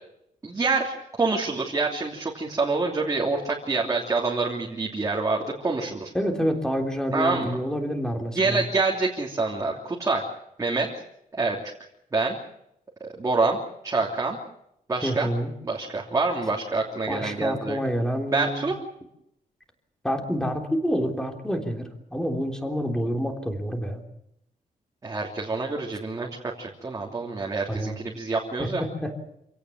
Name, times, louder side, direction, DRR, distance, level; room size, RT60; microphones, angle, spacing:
voice 1, 0.4-6.1 7.1-7.5 8.3-10.3 10.6-11.0 11.3-11.6 12.1-12.4 13.0-14.4 14.9-15.3 15.6-17.8 18.3-18.8 25.0-26.3 26.6-28.8, right 3 dB, 20° right, -2 dB, 3.1 m, -26 dB
voice 2, 6.1-8.6 15.0-15.5 17.1-18.7 20.0-24.0 27.7-28.0 28.6-29.1, equal, 5° left, 3 dB, 3.4 m, -28 dB
27.0 x 17.5 x 7.4 m, 0.77 s
wide cardioid pair, 175°, 15 cm